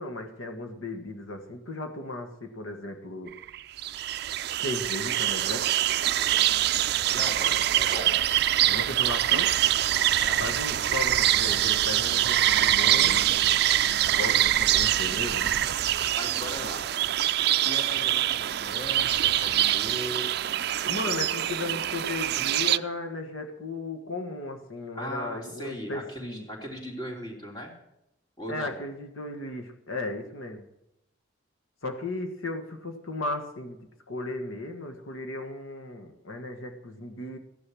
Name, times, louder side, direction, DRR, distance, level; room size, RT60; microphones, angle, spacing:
voice 1, 0.0-3.3 4.6-5.7 8.7-9.5 10.4-13.2 14.2-15.5 20.9-26.4 28.5-30.6 31.8-33.8 34.1-37.4, left 2 dB, 90° left, 6 dB, 1.5 m, -35 dB
sound 1, 3.3-22.8, right 12 dB, 50° right, 0.4 m, -24 dB
voice 2, 7.1-8.3 10.2-10.4 16.1-16.8 17.6-20.3 24.9-27.7 28.4-28.7, equal, 20° left, -2 dB, 3.0 m, -38 dB
15.0 x 10.0 x 6.2 m, 0.86 s
head